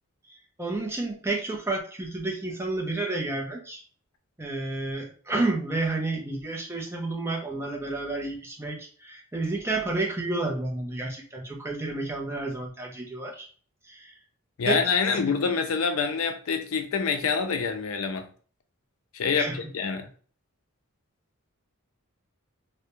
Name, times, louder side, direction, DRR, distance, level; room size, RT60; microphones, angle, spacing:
voice 1, 0.3-3.8 4.4-13.5 13.9-14.1 14.7-14.8 15.1-15.2 19.4-19.6, right 2 dB, 10° right, 0 dB, 0.4 m, -30 dB
voice 2, 14.6-18.3 19.1-20.1, left 5 dB, 70° left, 7 dB, 0.4 m, -26 dB
2.3 x 2.1 x 2.8 m, 0.42 s
head